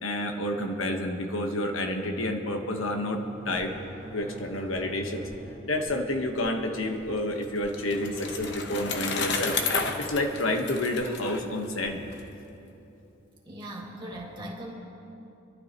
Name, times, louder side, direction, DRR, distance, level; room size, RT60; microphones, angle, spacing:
voice 1, 0.0-3.7 4.1-5.3 5.7-9.6 10.0-12.1, left 1 dB, 80° left, 3 dB, 1.3 m, -29 dB
sound 1, 2.2-12.2, right 1 dB, 90° right, 1.8 m, -48 dB
Bicycle, 7.1-12.2, left 4 dB, 60° left, 1.1 m, -32 dB
voice 2, 13.5-14.7, right 1 dB, 25° right, -3 dB, 2.3 m, -39 dB
25.5 x 12.0 x 3.0 m, 2.9 s
head